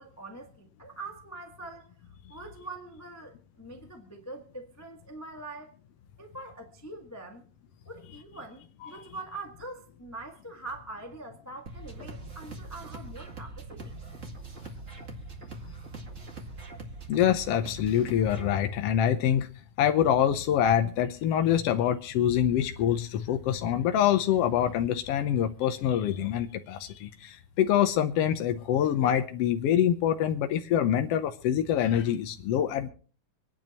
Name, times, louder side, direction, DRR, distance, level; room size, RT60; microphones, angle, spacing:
voice 1, 0.0-1.9 2.3-5.7 6.2-7.4 7.8-13.9, right 2 dB, 25° left, 0.3 m, -43 dB
sound 1, 11.7-18.5, right 3 dB, 30° right, 1.7 m, -42 dB
voice 2, 17.1-19.5 19.8-32.9, left 10 dB, 75° left, 1.4 m, -25 dB
26.0 x 10.5 x 3.0 m
omnidirectional pair, 3.8 m